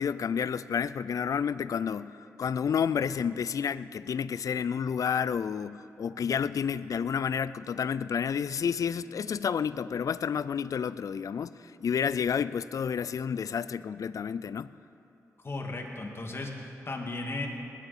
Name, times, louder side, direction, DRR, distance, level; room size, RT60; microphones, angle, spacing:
voice 1, 0.0-11.5 11.8-14.7, left 7 dB, 60° left, 16 dB, 0.4 m, -30 dB
voice 2, 15.4-17.5, left 2 dB, 40° left, 1 dB, 2.2 m, -35 dB
19.5 x 11.5 x 4.3 m, 2.9 s
supercardioid pair, 50°, 6 cm